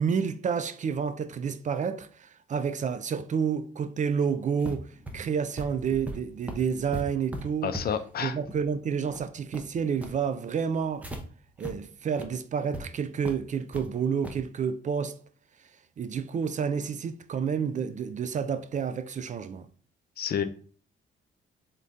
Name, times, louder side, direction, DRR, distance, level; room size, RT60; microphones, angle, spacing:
voice 1, 0.0-7.7 8.2-11.1 11.6-15.2 16.0-19.7, right 6 dB, 40° right, 0.4 m, -29 dB
sound 1, 4.6-11.2 11.6-11.7 12.1-12.3 12.7-12.8 13.3-13.9 14.2-14.5, right 1 dB, 5° right, 0.7 m, -39 dB
voice 2, 7.6-8.4 20.2-20.4, left 8 dB, 50° left, 0.5 m, -29 dB
3.7 x 2.7 x 3.5 m
cardioid pair, 90°, 20 cm